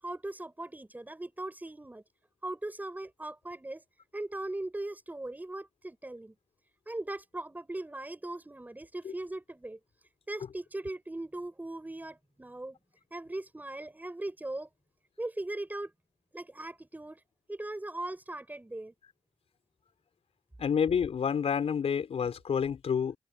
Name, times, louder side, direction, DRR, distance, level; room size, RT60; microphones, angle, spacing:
voice 1, 0.0-2.0 2.4-3.8 4.1-6.3 6.9-9.8 10.3-12.8 13.1-14.7 15.2-15.9 16.3-17.2 17.5-18.9, right 2 dB, 15° right, 6.7 m, -39 dB
voice 2, 20.6-23.2, left 7 dB, 70° left, 4.8 m, -28 dB
open air
cardioid pair, 80°, 11 cm